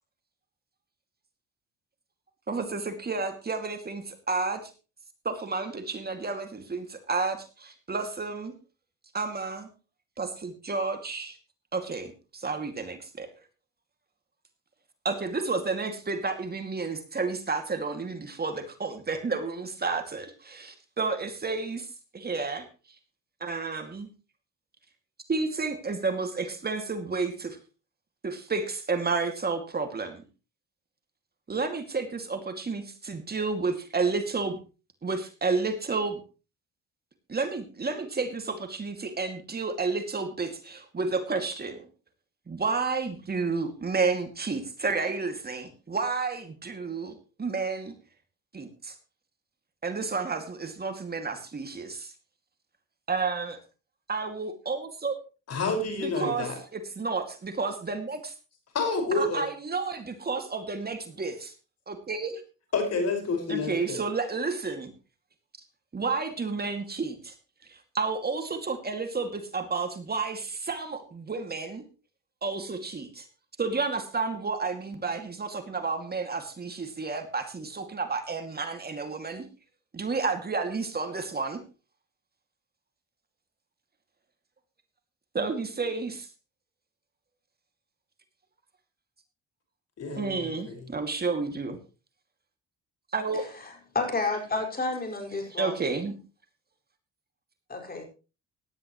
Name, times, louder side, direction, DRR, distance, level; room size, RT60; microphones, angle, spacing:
voice 1, 2.5-4.7 5.2-8.5 9.1-9.7 10.2-11.3 11.7-12.1 12.4-13.3 15.0-22.7 23.4-24.1 25.3-27.6 28.2-30.2 31.5-34.6 35.0-36.2 37.3-41.8 42.5-47.9 48.5-49.0 49.8-52.1 53.1-53.6 54.1-55.2 56.0-58.3 59.1-61.5 61.9-62.4 63.5-64.9 65.9-67.3 67.7-71.8 72.4-73.3 73.6-79.5 79.9-81.6 85.3-86.3 90.2-91.8 93.1-93.5 95.3-96.1, right 4 dB, 30° right, 6 dB, 2.4 m, -31 dB
voice 2, 55.5-56.6 58.7-59.5 62.7-64.0 90.0-90.8, left 3 dB, 55° left, 3 dB, 5.5 m, -29 dB
voice 3, 93.9-95.8 97.7-98.0, left 3 dB, 30° left, 3 dB, 5.4 m, -30 dB
17.5 x 11.5 x 3.1 m, 0.32 s
cardioid pair, 90°, 30 cm